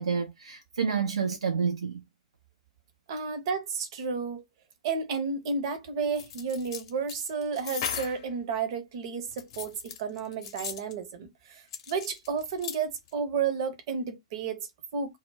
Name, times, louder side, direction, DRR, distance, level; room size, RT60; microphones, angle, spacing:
voice 1, 0.0-2.1, right 6 dB, 75° right, 0.4 m, -29 dB
voice 2, 3.1-4.4 4.8-15.2, right 5 dB, 50° right, 0.7 m, -32 dB
sound 1, 6.2-8.3 9.3-10.9 11.7-12.8 13.1-13.2, left 7 dB, 50° left, 0.6 m, -37 dB
2.1 x 2.0 x 3.4 m
figure-of-eight pair, 105°, 3 cm